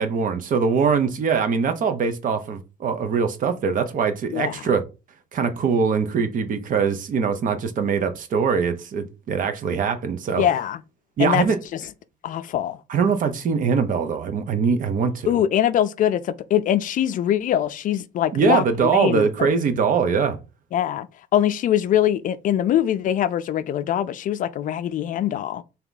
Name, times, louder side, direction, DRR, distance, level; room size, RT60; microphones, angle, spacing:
voice 1, 0.0-4.8 5.3-10.4 11.2-11.6 12.9-15.4 18.3-20.4, right 6 dB, 50° right, 0.8 m, -22 dB
voice 2, 10.3-10.8 11.2-11.4 11.7-11.8 12.2-12.8 15.3-19.3 20.7-21.1 21.3-25.6, left 11 dB, 50° left, 0.4 m, -22 dB
3.4 x 2.9 x 4.0 m
cardioid pair, 110°, 17 cm